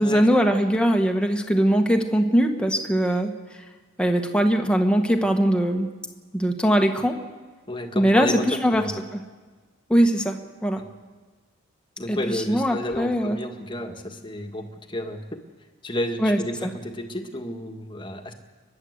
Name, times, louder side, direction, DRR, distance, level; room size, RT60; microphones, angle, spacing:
voice 1, 0.0-3.3 4.0-5.9 6.3-7.1 7.9-8.8 9.1-9.2 9.9-10.8 12.1-13.4 16.2-16.7, equal, 5° left, 3 dB, 1.5 m, -21 dB
voice 2, 7.7-9.0 10.8-10.9 12.0-15.4 15.8-18.3, left 1 dB, 25° left, 4 dB, 1.7 m, -31 dB
30.0 x 11.0 x 8.1 m, 1.4 s
head